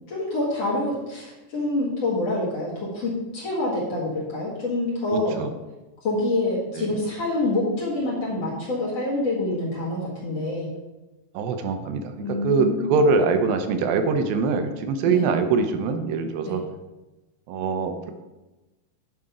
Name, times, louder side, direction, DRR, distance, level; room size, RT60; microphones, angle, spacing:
voice 1, 0.1-5.3 6.0-10.7 12.2-12.9 15.0-15.3 16.4-16.6, left 2 dB, 50° left, -5 dB, 2.8 m, -26 dB
voice 2, 5.1-5.5 6.7-7.0 11.3-16.6 17.5-18.1, right 4 dB, 80° right, 7 dB, 2.5 m, -23 dB
9.6 x 5.8 x 5.0 m, 1.1 s
omnidirectional pair, 4.2 m